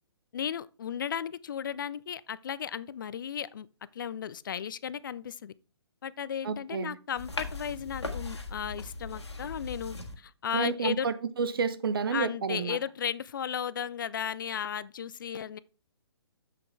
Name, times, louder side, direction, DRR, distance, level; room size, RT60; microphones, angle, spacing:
voice 1, 0.3-3.7 3.9-5.5 6.0-11.1 12.1-15.6, left 8 dB, 50° left, 0.4 m, -35 dB
voice 2, 6.4-7.0 10.5-12.8, right 5 dB, 55° right, 0.7 m, -30 dB
sound 1, 7.2-10.2, left 3 dB, 80° left, 1.6 m, -38 dB
7.6 x 6.7 x 3.4 m
figure-of-eight pair, 125°, 14 cm